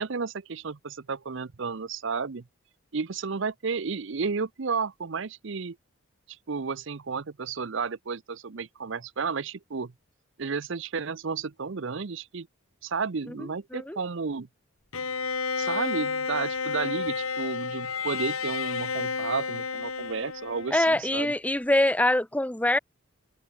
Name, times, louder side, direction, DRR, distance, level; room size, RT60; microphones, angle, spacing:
voice 1, 0.0-2.4 2.9-5.8 6.5-9.9 10.4-12.5 12.8-14.5 15.6-21.3, right 5 dB, 60° right, 0.7 m, -32 dB
Bowed string instrument, 14.9-21.0, left 5 dB, 85° left, 2.3 m, -31 dB
voice 2, 20.7-22.8, left 1 dB, 5° left, 0.7 m, -24 dB
head